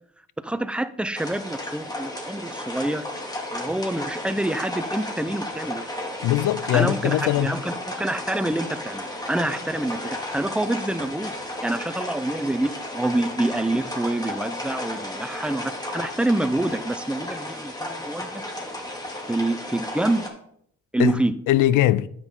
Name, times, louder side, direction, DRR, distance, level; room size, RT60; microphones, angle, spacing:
voice 1, 0.4-3.0 3.5-5.8 6.7-11.4 11.6-18.3 19.3-20.3 20.9-21.3, right 1 dB, 5° right, 0.6 m, -26 dB
sound 1, 1.2-20.3, left 1 dB, 15° left, 2.4 m, -33 dB
voice 2, 6.2-7.6 21.0-22.1, left 13 dB, 85° left, 0.6 m, -21 dB
9.6 x 8.1 x 3.8 m
cardioid pair, 90°, 30 cm